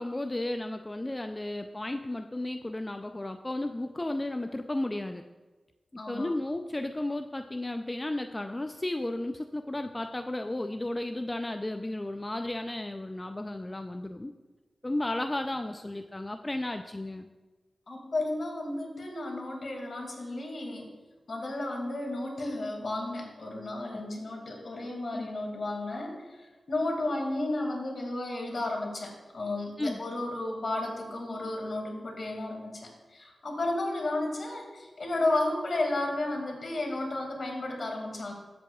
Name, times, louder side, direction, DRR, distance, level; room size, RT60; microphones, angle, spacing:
voice 1, 0.0-5.2 6.1-14.3 14.8-17.3 23.9-24.0 25.1-25.3 29.8-30.0, left 1 dB, 25° left, 6 dB, 0.4 m, -34 dB
voice 2, 6.0-6.3 17.9-20.9 21.3-38.3, left 2 dB, 65° left, 1 dB, 2.2 m, -33 dB
14.0 x 7.7 x 2.4 m, 1.2 s
cardioid pair, 50°, 0 cm